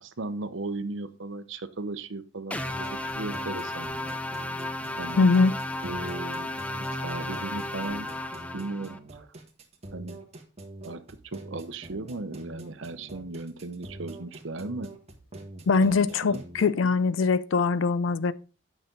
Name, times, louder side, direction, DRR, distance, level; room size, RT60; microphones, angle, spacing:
voice 1, 0.0-4.2 5.0-5.3 5.8-6.5 6.9-8.1 8.5-9.3 9.9-10.2 10.8-14.9 15.8-16.4, right 2 dB, 70° right, 0.8 m, -36 dB
sound 1, 2.5-9.0, left 1 dB, 5° left, 0.4 m, -34 dB
sound 2, 2.7-16.7, right 2 dB, 35° right, 1.4 m, -45 dB
voice 2, 5.2-5.5 15.7-18.3, left 4 dB, 75° left, 0.5 m, -22 dB
9.5 x 5.9 x 3.8 m
head